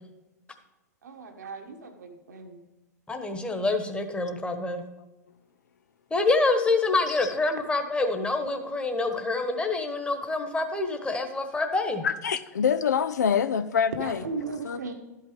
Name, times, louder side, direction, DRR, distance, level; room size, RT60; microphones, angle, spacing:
voice 1, 1.0-2.6 14.0-14.9, right 4 dB, 80° right, 1.4 m, -37 dB
voice 2, 3.1-4.8 6.1-12.0, left 3 dB, 10° left, 1.3 m, -26 dB
voice 3, 12.0-14.3 14.6-14.8, left 7 dB, 80° left, 0.4 m, -25 dB
12.0 x 5.5 x 5.2 m
hypercardioid pair, 100°, 9 cm